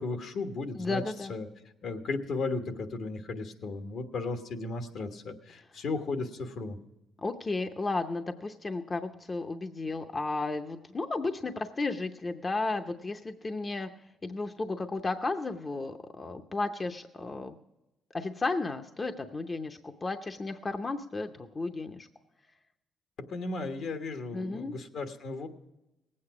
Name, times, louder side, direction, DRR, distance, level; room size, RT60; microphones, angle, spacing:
voice 1, 0.0-1.0 1.3-1.5 1.8-6.8 23.3-25.5, left 3 dB, 70° left, 6 dB, 1.4 m, -35 dB
voice 2, 0.8-1.3 7.2-13.9 14.2-17.6 18.1-22.1 24.3-24.7, left 3 dB, 30° left, 7 dB, 0.7 m, -33 dB
18.5 x 8.7 x 4.8 m, 0.96 s
cardioid pair, 90°, 0 cm